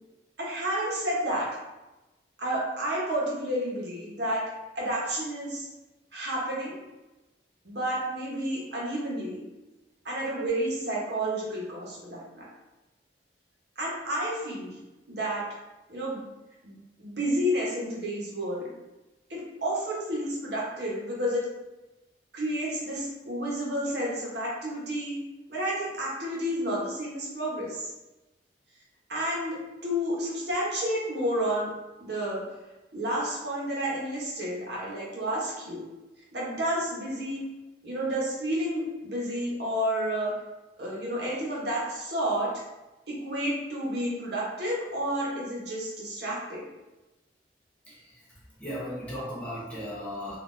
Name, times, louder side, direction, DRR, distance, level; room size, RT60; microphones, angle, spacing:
voice 1, 0.4-1.5 2.4-4.4 4.7-5.7 6.1-6.8 7.6-9.4 10.0-12.5 13.8-14.8 15.1-15.4 15.9-16.2 16.6-18.7 19.3-21.5 22.3-25.2 25.5-27.9 29.1-31.7 32.0-32.4 32.9-35.8 36.3-37.4 37.8-40.3 40.8-42.5 43.1-46.6, equal, 65° right, -5 dB, 1.1 m, -30 dB
voice 2, 48.6-50.4, equal, 10° left, -9 dB, 1.0 m, -36 dB
4.0 x 2.6 x 2.6 m, 1.1 s
head